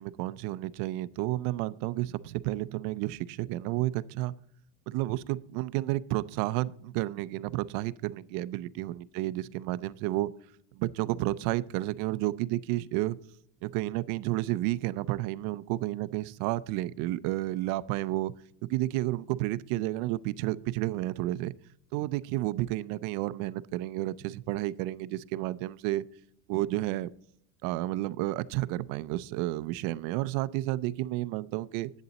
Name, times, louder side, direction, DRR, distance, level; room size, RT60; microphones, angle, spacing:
voice 1, 0.0-4.3 4.9-10.3 10.7-13.2 13.6-18.3 18.6-21.5 21.9-26.0 26.5-27.1 27.6-31.9, right 17 dB, 55° right, 17 dB, 0.5 m, -31 dB
11.0 x 8.3 x 4.0 m, 0.69 s
cardioid pair, 160°, 41 cm